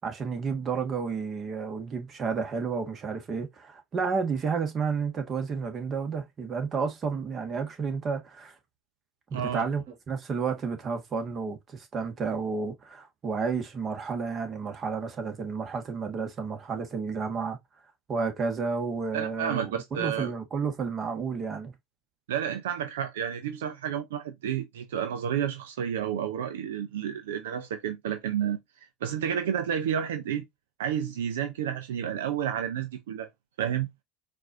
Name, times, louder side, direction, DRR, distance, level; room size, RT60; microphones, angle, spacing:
voice 1, 0.0-8.5 9.3-17.6 18.1-21.7, right 5 dB, 40° right, 1.4 m, -31 dB
voice 2, 9.3-9.7 19.1-20.3 22.3-28.6 29.0-30.4 30.8-33.3 33.6-33.9, right 9 dB, 85° right, 0.5 m, -30 dB
4.6 x 2.5 x 2.6 m
hypercardioid pair, 80°, 0 cm